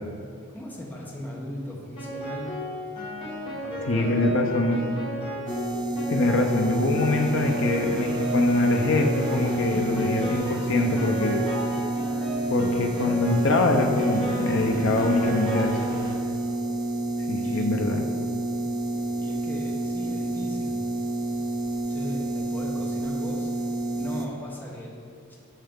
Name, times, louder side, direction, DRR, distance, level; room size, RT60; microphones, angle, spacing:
voice 1, 0.5-2.6 3.6-4.3 17.4-17.7 19.2-20.8 21.9-23.5 24.0-24.9 25.3-25.4, equal, 10° left, -4 dB, 0.9 m, -38 dB
Piano, 2.0-16.3, equal, 25° left, 1.7 m, -33 dB
voice 2, 3.9-4.8 6.1-11.4 12.5-15.8 17.3-18.0, left 2 dB, 60° left, 3 dB, 0.6 m, -23 dB
sound 1, 5.5-24.3, right 2 dB, 20° right, 0.4 m, -29 dB
sound 2, 6.1-16.2, right 1 dB, 40° right, 1.0 m, -46 dB
8.9 x 5.6 x 3.7 m, 2.5 s
head